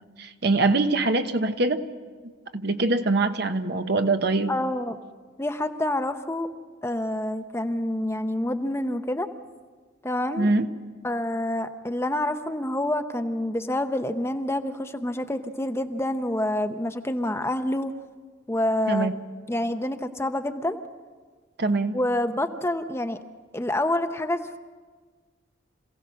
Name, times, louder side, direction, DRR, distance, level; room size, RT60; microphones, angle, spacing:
voice 1, 0.2-1.8 2.5-4.5 10.4-10.7 18.9-19.1 21.6-21.9, right 2 dB, 55° right, 8 dB, 1.0 m, -23 dB
voice 2, 4.5-5.0 5.4-6.5 6.8-9.3 10.0-10.5 11.0-17.9 18.5-19.2 19.5-20.8 21.9-23.2 23.5-24.6, left 1 dB, 15° left, 8 dB, 0.7 m, -27 dB
26.5 x 16.5 x 6.3 m, 1.5 s
head